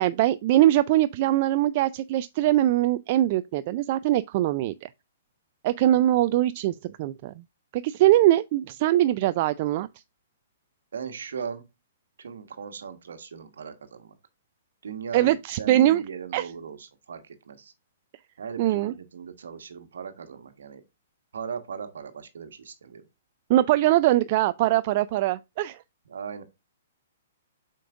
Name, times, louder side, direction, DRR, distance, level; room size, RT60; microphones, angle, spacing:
voice 1, 0.0-4.9 5.6-7.3 7.7-9.9 15.1-16.0 16.3-16.5 18.6-18.9 23.5-25.8, right 14 dB, 45° right, 0.3 m, -22 dB
voice 2, 10.9-11.6 12.2-14.1 14.8-16.8 17.1-17.7 18.4-20.8 21.3-23.1 26.1-26.4, right 6 dB, 70° right, 1.3 m, -38 dB
7.5 x 5.2 x 2.4 m
figure-of-eight pair, 120°, 0 cm